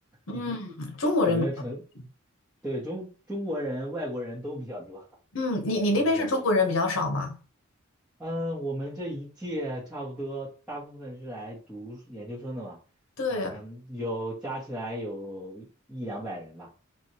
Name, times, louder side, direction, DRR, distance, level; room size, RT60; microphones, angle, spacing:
voice 1, 0.3-1.5 5.3-7.4 13.2-13.6, left 2 dB, 75° left, 0.9 m, -26 dB
voice 2, 1.2-1.8 2.6-5.1 5.8-6.3 8.2-12.8 13.3-16.7, equal, 5° right, 1.0 m, -35 dB
4.4 x 2.4 x 2.8 m
head